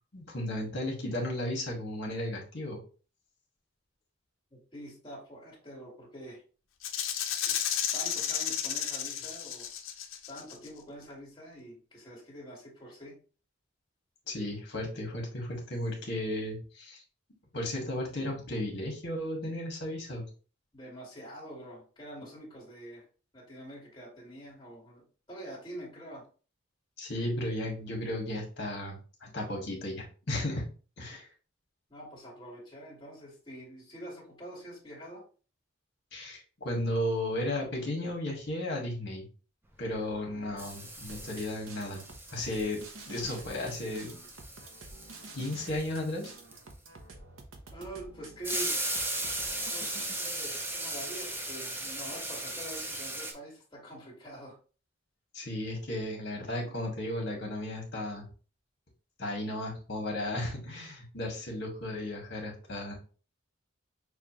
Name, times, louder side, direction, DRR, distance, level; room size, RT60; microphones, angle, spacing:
voice 1, 0.1-2.8 14.3-17.0 17.5-20.2 27.0-30.7 31.0-31.3 36.1-39.3 39.8-42.0 42.3-42.8 43.0-44.1 45.3-46.3 55.3-58.2 59.2-62.9, left 1 dB, 55° left, 0 dB, 1.6 m, -34 dB
voice 2, 4.5-6.4 7.4-9.7 10.3-13.2 20.7-23.1 23.3-26.3 31.9-35.3 40.1-40.7 47.7-48.8 49.7-54.6, right 1 dB, 20° left, -5 dB, 1.9 m, -46 dB
Rattle (instrument), 6.8-10.7, left 9 dB, 75° left, 0.6 m, -32 dB
sound 1, 39.9-40.3 40.6-46.9 48.4-53.3, right 1 dB, 10° right, 0.6 m, -37 dB
sound 2, 41.1-50.2, right 3 dB, 80° right, 0.8 m, -49 dB
6.4 x 2.4 x 3.0 m, 0.36 s
head